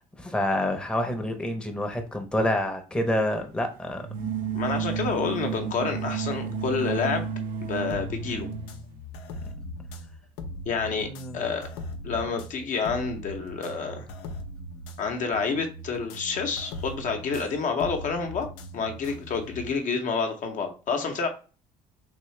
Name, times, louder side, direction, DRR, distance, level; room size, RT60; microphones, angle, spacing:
voice 1, 0.2-4.0 11.0-11.4, left 1 dB, 5° left, 4 dB, 0.7 m, -27 dB
sound 1, 4.0-8.8, right 6 dB, 60° right, 0.7 m, -31 dB
voice 2, 4.5-7.3 7.6-8.5 10.7-11.7 12.0-14.1 15.0-21.3, left 5 dB, 55° left, 4 dB, 0.8 m, -29 dB
sound 2, 7.7-19.8, left 1 dB, 90° left, 0.6 m, -40 dB
3.6 x 2.7 x 3.2 m, 0.37 s
supercardioid pair, 95°, 16 cm